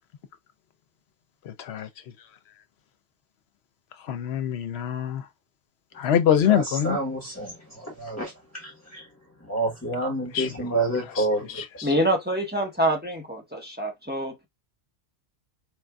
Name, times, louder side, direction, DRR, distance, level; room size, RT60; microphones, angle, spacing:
voice 1, 1.5-1.9 4.1-5.2 6.0-7.0 10.3-10.5 11.6-11.9, left 9 dB, 70° left, 0.9 m, -24 dB
voice 2, 6.4-9.1 9.4-11.6, right 2 dB, 15° left, 1.2 m, -29 dB
voice 3, 11.8-14.5, right 1 dB, 10° right, 1.0 m, -26 dB
4.5 x 2.5 x 2.3 m
omnidirectional pair, 1.1 m